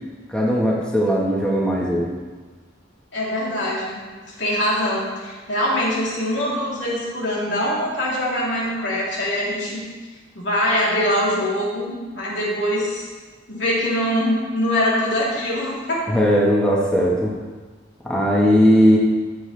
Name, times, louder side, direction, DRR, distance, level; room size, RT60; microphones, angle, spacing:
voice 1, 0.3-2.1 16.1-17.3 18.0-19.0, equal, 5° left, -4 dB, 1.5 m, -18 dB
voice 2, 3.1-4.0 4.4-9.8 10.4-13.1 13.5-16.1, equal, 80° left, -6 dB, 3.5 m, -23 dB
14.5 x 7.6 x 3.4 m, 1.4 s
head